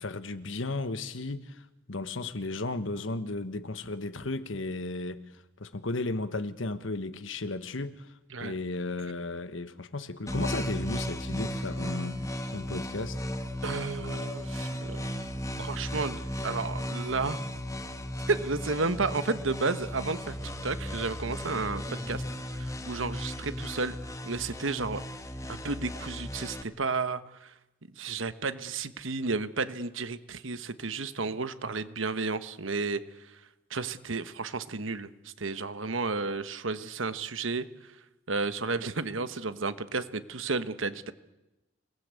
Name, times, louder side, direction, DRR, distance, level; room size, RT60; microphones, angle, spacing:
voice 1, 0.0-1.6 1.9-5.2 5.6-8.1 8.4-12.2 12.5-13.2, left 2 dB, 70° left, 1.3 m, -34 dB
sound 1, 10.3-26.6, equal, 15° left, 1.6 m, -35 dB
voice 2, 13.6-15.1 15.6-17.5 18.3-20.4 20.6-22.2 22.6-24.0 24.2-25.0 25.5-27.5 28.0-33.4 33.7-37.9 38.3-41.1, right 3 dB, 75° right, 1.3 m, -32 dB
28.0 x 19.0 x 8.4 m
head